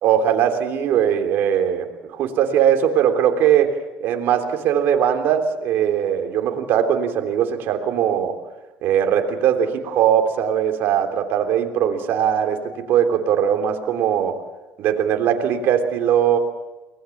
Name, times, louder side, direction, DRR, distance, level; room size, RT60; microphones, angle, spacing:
voice 1, 0.0-3.7 4.0-8.4 8.8-12.6 12.9-14.4 14.8-16.4, right 9 dB, 60° right, 4 dB, 3.3 m, -20 dB
23.5 x 19.5 x 7.3 m, 1.1 s
supercardioid pair, 100°, 4 cm